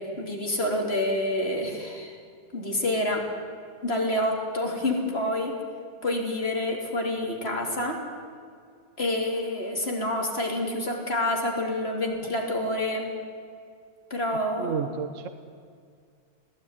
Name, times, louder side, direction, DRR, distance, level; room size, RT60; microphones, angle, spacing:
voice 1, 0.0-2.2 2.5-3.2 3.8-5.6 6.0-8.0 9.0-13.1 14.1-14.9, left 1 dB, 30° left, 1 dB, 3.6 m, -28 dB
voice 2, 14.6-15.3, right 6 dB, 50° right, 10 dB, 1.2 m, -31 dB
21.0 x 17.0 x 9.8 m, 2.2 s
omnidirectional pair, 2.0 m